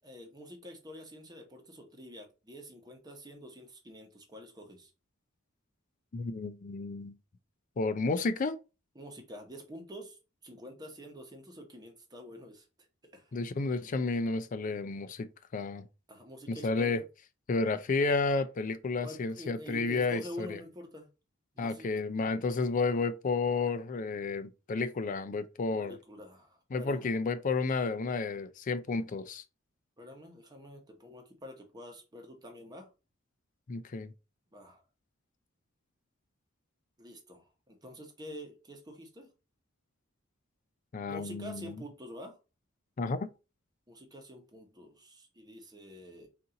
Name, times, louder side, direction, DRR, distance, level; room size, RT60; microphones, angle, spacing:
voice 1, 0.0-4.9 8.9-12.7 13.1-13.3 16.1-17.0 19.0-21.1 21.5-21.9 22.2-22.3 25.8-27.1 30.0-32.9 34.5-34.8 37.0-39.3 41.0-42.4 43.9-46.3, equal, 20° right, 1.0 m, -47 dB
voice 2, 6.1-7.1 7.8-8.6 13.3-15.9 16.5-17.0 17.5-20.6 21.6-26.0 26.7-29.4 33.7-34.1 40.9-41.7 43.0-43.2, left 3 dB, 40° left, 0.4 m, -31 dB
4.2 x 2.7 x 3.8 m
head